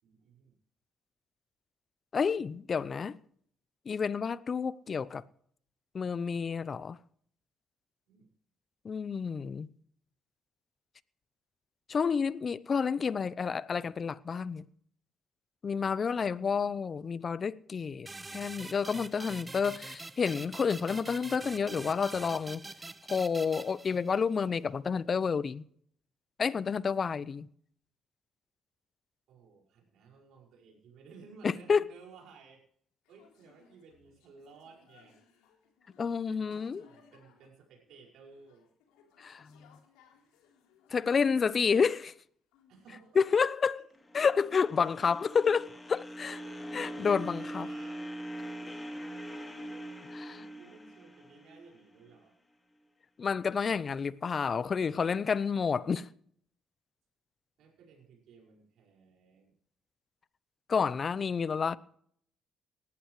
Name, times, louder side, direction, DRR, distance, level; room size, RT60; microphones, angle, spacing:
voice 1, 0.0-0.5 8.1-8.3 16.4-16.8 29.3-32.6 33.1-35.2 36.3-38.7 42.7-43.9 44.5-44.9 46.3-48.0 48.6-49.1 50.3-52.3 57.6-59.6, right 5 dB, 70° right, 5.5 m, -56 dB
voice 2, 2.1-3.2 3.9-5.2 5.9-7.0 8.8-9.7 11.9-14.6 15.6-22.7 23.1-25.6 26.4-27.5 31.7-31.8 36.0-36.8 39.2-39.6 40.9-42.1 43.2-43.7 44.1-46.3 46.7-47.7 50.1-50.3 53.2-56.1 60.7-61.8, left 6 dB, 45° left, 0.7 m, -30 dB
sound 1, 18.1-24.4, right 3 dB, 25° right, 1.1 m, -45 dB
sound 2, 33.0-42.2 42.5-43.3, left 6 dB, 85° left, 3.7 m, -65 dB
sound 3, 43.9-52.2, right 1 dB, 20° left, 3.0 m, -42 dB
19.0 x 14.5 x 3.2 m
supercardioid pair, 60°, 0 cm